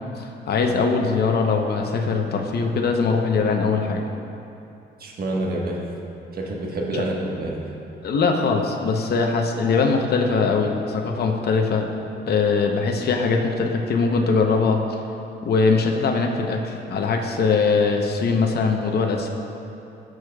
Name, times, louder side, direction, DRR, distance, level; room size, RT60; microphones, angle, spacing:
voice 1, 0.2-4.0 6.9-7.0 8.0-11.9 12.3-14.8 15.4-19.3, left 4 dB, 55° left, 2 dB, 0.8 m, -21 dB
voice 2, 5.0-5.8 6.3-7.6, right 1 dB, 50° right, -1 dB, 1.4 m, -27 dB
13.5 x 6.4 x 2.3 m, 2.8 s
cardioid pair, 90°, 20 cm